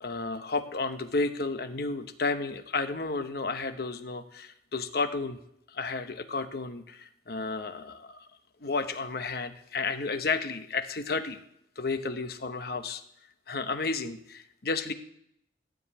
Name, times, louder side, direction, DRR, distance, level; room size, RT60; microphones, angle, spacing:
voice 1, 0.0-5.4 5.7-8.3 8.6-11.4 11.8-13.0 13.5-14.9, left 3 dB, 60° left, 8 dB, 1.0 m, -32 dB
12.5 x 5.2 x 8.9 m, 0.76 s
head